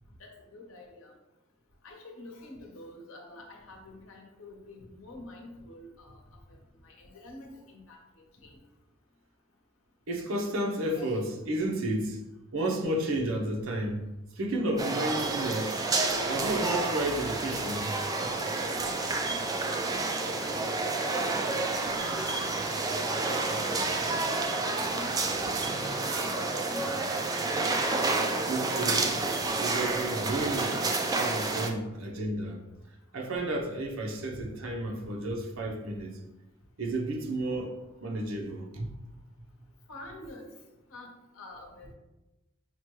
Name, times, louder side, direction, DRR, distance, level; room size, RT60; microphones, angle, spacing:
voice 1, 0.2-1.1 1.8-6.2 6.8-8.0 8.4-8.6 11.0-11.3 19.0-22.5 23.1-26.9 39.9-40.5 40.9-41.9, left 2 dB, 75° left, 0.8 m, -47 dB
voice 2, 10.1-12.2 12.5-14.0 14.4-15.8 16.3-17.9 28.4-29.2 29.6-32.6 33.1-36.2 36.8-38.9, right 1 dB, 70° right, 0.7 m, -32 dB
sound 1, 14.8-31.7, right 3 dB, 20° right, 0.3 m, -29 dB
5.8 x 2.2 x 3.0 m
head